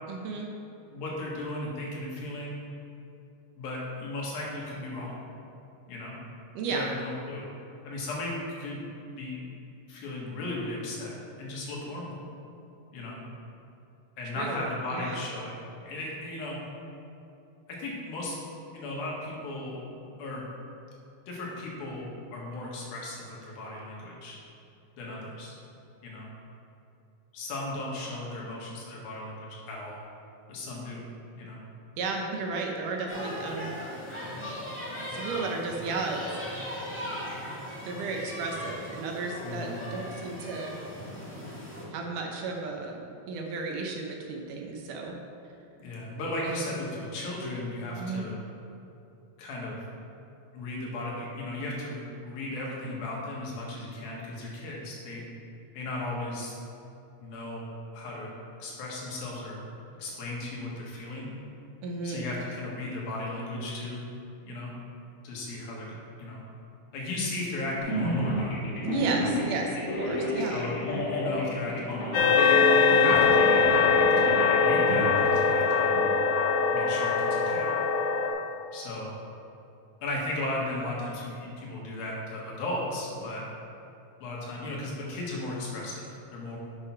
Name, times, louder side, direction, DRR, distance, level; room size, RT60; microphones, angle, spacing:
voice 1, 0.1-0.5 6.6-6.9 14.4-14.6 14.9-15.2 32.0-33.7 35.1-36.2 37.8-40.7 41.9-43.0 43.3-45.2 46.5-46.7 48.0-48.3 61.8-62.3 68.8-70.7, right 4 dB, 70° right, 1 dB, 2.3 m, -33 dB
voice 2, 0.9-2.6 3.6-5.2 5.9-6.2 6.7-7.5 7.9-8.8 9.1-9.5 9.9-11.1 11.4-12.2 12.9-13.2 14.2-15.5 15.8-16.6 17.7-18.4 18.7-19.8 20.2-20.4 21.3-24.4 25.0-25.5 26.0-26.3 27.3-30.0 30.5-31.0 31.4-31.6 39.4-39.8 45.8-48.4 49.4-49.8 50.5-55.2 55.8-56.6 57.2-58.3 58.6-59.6 60.0-61.3 62.0-64.0 64.4-64.7 65.2-66.4 66.9-68.6 69.1-69.3 70.1-75.9 76.7-77.7 78.7-79.1 80.0-83.4 84.2-86.6, left 2 dB, 85° left, -3 dB, 3.5 m, -36 dB
sound 1, 33.1-41.8, equal, 15° left, 0.4 m, -38 dB
sound 2, 67.8-76.1, left 1 dB, 50° left, 2.2 m, -32 dB
sound 3, 72.1-78.3, left 5 dB, 70° left, 2.1 m, -22 dB
7.8 x 6.1 x 5.8 m, 2.8 s
omnidirectional pair, 4.1 m